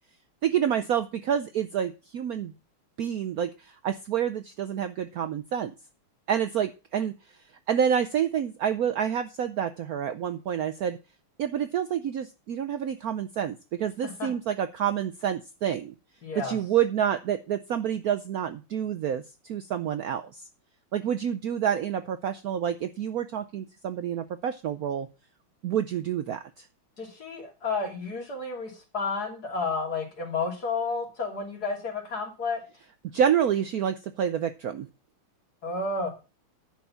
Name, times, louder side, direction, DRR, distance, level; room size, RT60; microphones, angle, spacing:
voice 1, 0.4-2.5 3.0-5.7 6.3-7.1 7.7-11.0 11.4-15.9 16.3-20.4 20.9-25.1 25.6-26.7 33.1-34.9, right 9 dB, 85° right, 9 dB, 0.8 m, -28 dB
voice 2, 16.2-16.6 27.0-32.6 35.6-36.1, left 4 dB, 45° left, 1 dB, 3.1 m, -31 dB
10.5 x 4.7 x 6.9 m, 0.31 s
omnidirectional pair, 2.3 m